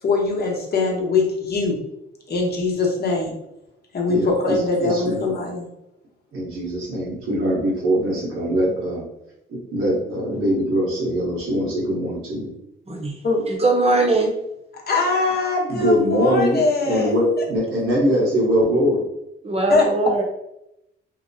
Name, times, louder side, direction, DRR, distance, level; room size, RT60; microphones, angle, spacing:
voice 1, 0.0-1.8 2.3-3.3 3.9-5.7 13.2-13.4 14.9-17.1 19.7-19.9, left 3 dB, 50° left, -1 dB, 0.8 m, -22 dB
voice 2, 4.1-5.2 6.3-9.0 9.5-12.5 15.7-19.0, equal, 80° right, -5 dB, 1.1 m, -22 dB
voice 3, 13.5-14.3 19.4-20.2, right 3 dB, 30° right, -1 dB, 0.8 m, -20 dB
2.8 x 2.0 x 2.6 m, 0.85 s
cardioid pair, 80°, 21 cm